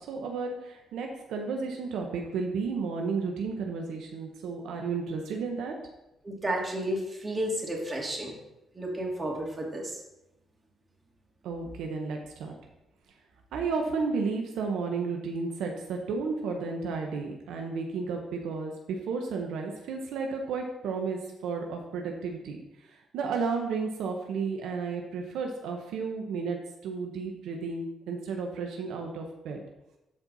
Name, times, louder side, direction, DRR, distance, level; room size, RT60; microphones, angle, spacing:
voice 1, 0.0-5.7 11.4-12.5 13.5-22.6 22.9-26.6 26.8-29.6, right 4 dB, 85° right, 2 dB, 1.0 m, -33 dB
voice 2, 6.2-8.3 8.7-10.0, right 1 dB, 25° right, -1 dB, 2.5 m, -32 dB
13.0 x 4.5 x 4.1 m, 0.92 s
cardioid pair, 90°, 0 cm